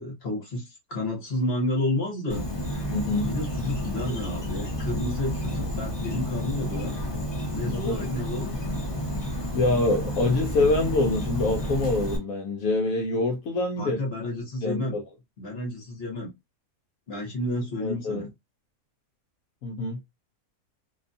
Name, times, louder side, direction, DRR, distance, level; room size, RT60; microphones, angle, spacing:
voice 1, 0.0-2.5 3.2-7.0 7.5-8.5 13.8-15.0 15.4-16.3 17.1-18.3, left 1 dB, 50° left, 1.0 m, -31 dB
Insect, 2.3-12.2, equal, 30° left, 0.5 m, -31 dB
voice 2, 2.9-3.3 7.6-8.0 9.5-14.0 14.6-15.0 17.8-18.3 19.6-20.0, left 2 dB, 70° left, 0.9 m, -25 dB
2.7 x 2.3 x 2.5 m
omnidirectional pair, 1.6 m